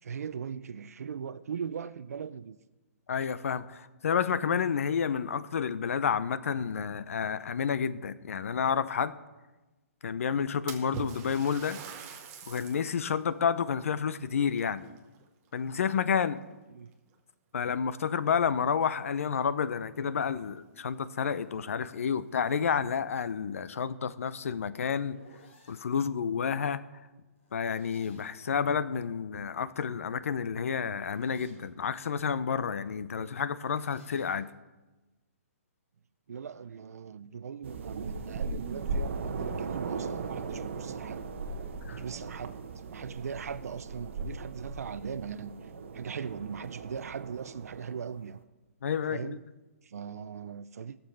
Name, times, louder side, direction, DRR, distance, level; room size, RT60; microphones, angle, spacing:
voice 1, 0.0-2.6 16.7-16.9 33.2-33.4 36.3-41.2 41.9-42.6 42.9-48.4 49.1-49.4 49.8-51.0, right 7 dB, 85° right, 0.5 m, -39 dB
voice 2, 3.1-9.2 10.0-11.8 12.5-14.9 15.5-16.4 17.5-25.2 25.7-26.8 27.5-34.5 41.9-42.0 48.8-49.4, left 7 dB, 65° left, 0.6 m, -30 dB
Splash splatter, 10.7-13.0 13.5-13.6 14.5-15.5 15.9-16.3 17.1-17.2 17.7-17.8 20.0-20.1 20.4-20.5 21.1-21.2 21.6-21.7 22.4-23.0, right 7 dB, 20° right, 0.9 m, -43 dB
sound 1, 24.7-25.9 27.4-28.5 29.9-31.7 33.4-34.5, left 2 dB, 45° left, 4.4 m, -60 dB
sound 2, 37.6-48.4, right 4 dB, 50° right, 1.0 m, -38 dB
16.0 x 6.9 x 5.7 m
hypercardioid pair, 175°, 8 cm